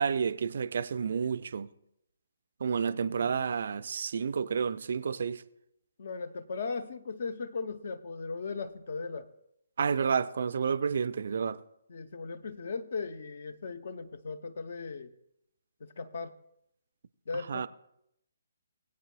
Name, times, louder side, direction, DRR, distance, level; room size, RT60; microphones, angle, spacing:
voice 1, 0.0-1.7 2.6-5.4 9.8-11.6 17.5-17.7, right 6 dB, 50° right, 0.4 m, -30 dB
voice 2, 2.9-3.5 6.0-9.3 11.9-15.1 15.8-16.3 17.3-17.7, left 4 dB, 50° left, 0.6 m, -38 dB
20.0 x 8.5 x 2.3 m
figure-of-eight pair, 135°, 0 cm